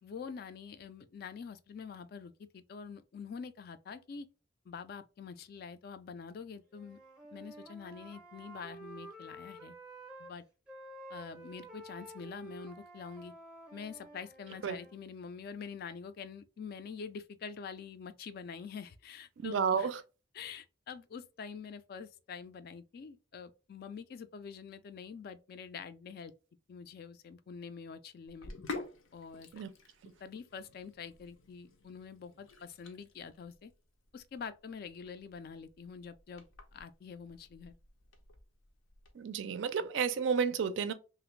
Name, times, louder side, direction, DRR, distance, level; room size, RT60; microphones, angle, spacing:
voice 1, 0.0-4.3 4.7-7.0 7.3-9.7 10.2-10.4 11.1-13.3 13.7-19.9 20.3-26.3 26.7-28.5 29.1-29.6 30.2-33.7 34.1-36.5 36.7-37.7, left 6 dB, 50° left, 0.3 m, -46 dB
Wind instrument woodwind instrument, 6.7-10.3 10.7-14.9, right 2 dB, 5° right, 0.6 m, -51 dB
voice 2, 19.4-20.0 29.5-29.7 39.2-40.9, right 6 dB, 65° right, 0.4 m, -31 dB
Sink (filling or washing), 28.3-39.1, left 3 dB, 90° left, 0.6 m, -49 dB
2.9 x 2.4 x 3.1 m
head